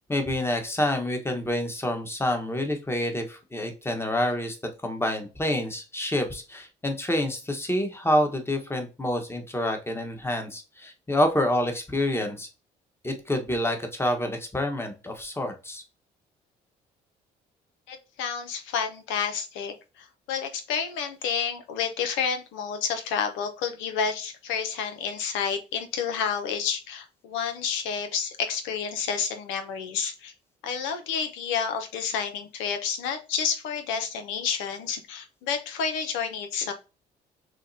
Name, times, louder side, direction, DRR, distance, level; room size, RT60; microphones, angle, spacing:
voice 1, 0.1-4.6 4.8-12.5 13.0-15.8, left 1 dB, 10° left, 5 dB, 1.1 m, -27 dB
voice 2, 17.9-30.3 30.6-36.7, left 6 dB, 80° left, 7 dB, 0.6 m, -30 dB
6.3 x 2.1 x 2.7 m, 0.30 s
supercardioid pair, 60°, 20 cm